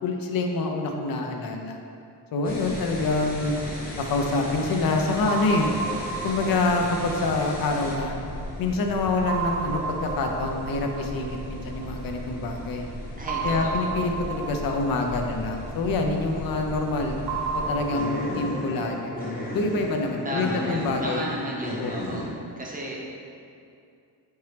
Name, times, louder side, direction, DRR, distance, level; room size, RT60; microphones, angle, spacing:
voice 1, 0.0-1.8 2.3-3.6 4.0-5.7 6.2-8.1 8.6-12.9 13.4-17.2 17.5-19.1 19.5-21.3 21.8-21.9, left 3 dB, 60° left, 3 dB, 0.5 m, -26 dB
sound 1, 2.4-22.3, left 1 dB, 20° left, 0.8 m, -36 dB
sound 2, 5.3-8.6 9.3-12.2 13.3-16.4 17.3-20.4, right 4 dB, 75° right, 0.6 m, -34 dB
voice 2, 13.2-13.9 20.2-22.2 22.6-23.0, equal, 20° right, -4 dB, 0.6 m, -33 dB
4.5 x 2.9 x 3.2 m, 2.5 s
cardioid pair, 125°, 41 cm